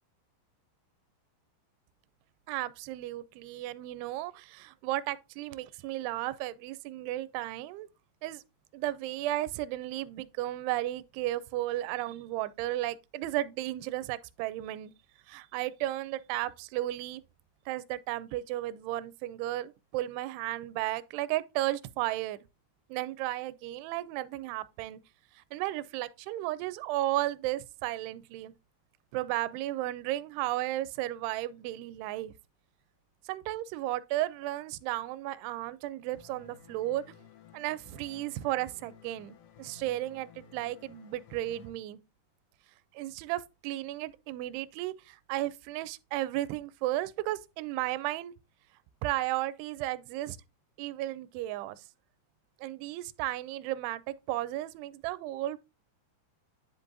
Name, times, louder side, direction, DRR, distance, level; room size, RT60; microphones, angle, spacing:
voice 1, 2.5-7.9 8.2-8.4 8.7-14.9 15.3-17.2 17.7-22.4 22.9-25.0 25.4-28.5 29.1-32.3 33.3-37.0 37.5-42.0 42.9-48.3 49.0-50.4 50.8-51.8 52.6-55.6, right 15 dB, 85° right, 2.5 m, -34 dB
sound 1, 36.1-41.7, left 6 dB, 80° left, 2.7 m, -55 dB
10.0 x 5.3 x 2.6 m
omnidirectional pair, 4.9 m